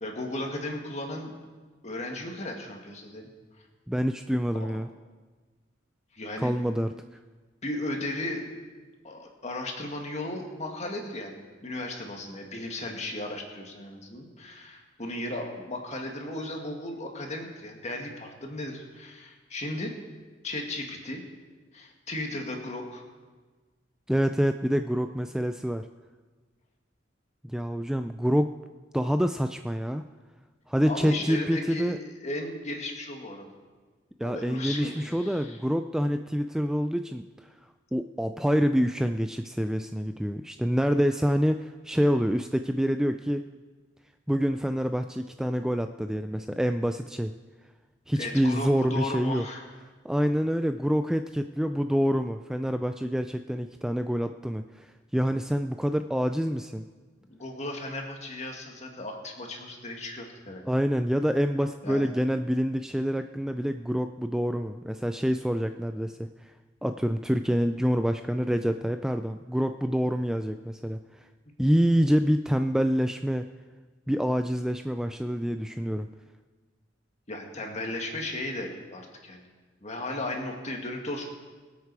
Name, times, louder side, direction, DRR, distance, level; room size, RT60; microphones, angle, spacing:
voice 1, 0.0-1.4 1.8-3.3 6.1-6.6 7.6-8.5 9.0-19.9 20.4-21.2 21.7-23.0 30.9-33.5 34.2-35.6 48.1-49.6 57.3-60.7 61.8-62.1 77.3-79.5 79.8-81.3, left 1 dB, 35° left, 2 dB, 2.0 m, -35 dB
voice 2, 3.9-4.9 6.4-6.9 24.1-25.9 27.4-28.5 28.9-30.0 30.7-32.0 34.2-37.5 37.9-43.5 44.3-47.3 48.1-49.4 50.0-54.9 55.1-56.9 60.7-66.5 66.8-71.3 71.6-73.5 74.1-76.1, equal, 5° right, 8 dB, 0.3 m, -27 dB
22.5 x 8.3 x 4.8 m, 1.4 s
head